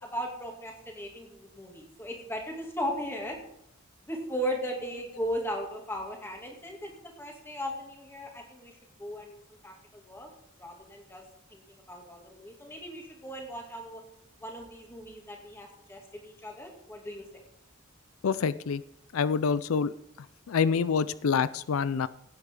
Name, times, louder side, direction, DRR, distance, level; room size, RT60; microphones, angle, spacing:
voice 1, 0.0-3.4 4.1-6.9 7.2-10.3 10.6-11.2 11.5-11.6 11.9-14.0 14.4-17.4, equal, 10° left, 1 dB, 2.4 m, -37 dB
voice 2, 18.2-18.8 19.1-19.9 20.5-22.1, left 6 dB, 85° left, 16 dB, 0.4 m, -26 dB
16.5 x 9.2 x 3.8 m, 0.78 s
head